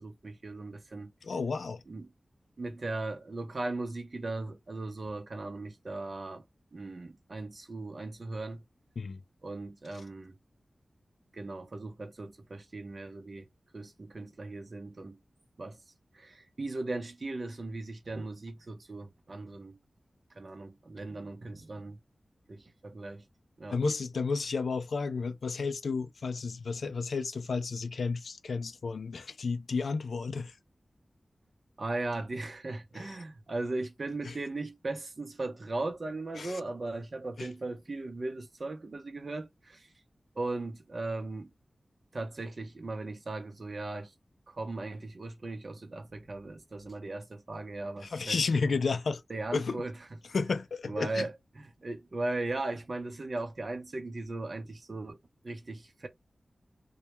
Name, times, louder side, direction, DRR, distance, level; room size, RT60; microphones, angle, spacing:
voice 1, 0.0-1.1 1.9-2.1 2.6-6.4 6.7-8.6 9.4-10.4 11.3-13.5 13.7-15.2 15.6-15.8 16.1-19.8 20.3-22.0 22.5-23.3 23.6-23.8 31.8-39.9 40.4-41.5 42.1-44.1 44.5-48.8 49.3-50.0 50.9-56.1, right 2 dB, 50° right, 0.6 m, -38 dB
voice 2, 1.2-1.8 9.0-9.2 23.7-30.5 33.0-33.1 34.3-34.4 36.4-36.6 37.4-37.5 48.1-49.2 49.5-49.8 50.3-51.3, left 4 dB, 90° left, 0.3 m, -32 dB
2.2 x 2.0 x 2.9 m
wide cardioid pair, 105°, 0 cm